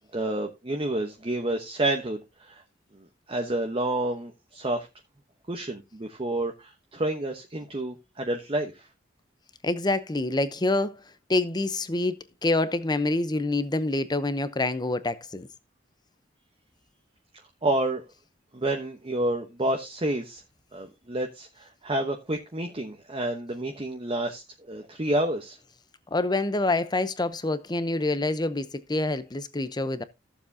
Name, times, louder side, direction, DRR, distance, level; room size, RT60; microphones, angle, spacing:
voice 1, 0.1-2.5 3.3-4.9 5.5-8.7 17.6-18.0 18.5-20.4 20.7-25.6, right 1 dB, 30° right, 1.0 m, -29 dB
voice 2, 9.6-10.9 11.3-12.1 12.4-15.5 26.1-30.0, left 2 dB, 25° left, 0.7 m, -26 dB
14.5 x 7.2 x 2.8 m
head